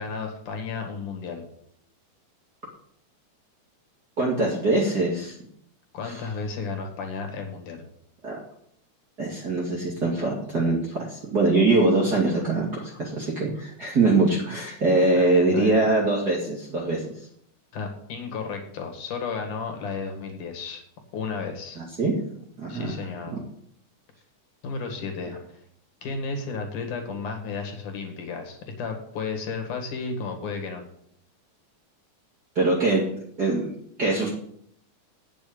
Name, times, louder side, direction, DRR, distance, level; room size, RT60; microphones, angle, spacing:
voice 1, 0.0-1.5 5.9-7.8 15.2-15.9 17.7-20.8 21.1-21.8 22.7-23.4 24.6-25.4 26.0-30.8, left 4 dB, 70° left, 3 dB, 3.4 m, -33 dB
voice 2, 4.2-5.3 6.1-6.2 8.2-8.4 9.2-17.0 21.8-22.1 22.6-23.0 32.6-33.0 33.4-33.7 34.0-34.3, right 2 dB, 35° right, -4 dB, 2.4 m, -23 dB
9.0 x 6.9 x 8.7 m, 0.67 s
omnidirectional pair, 3.7 m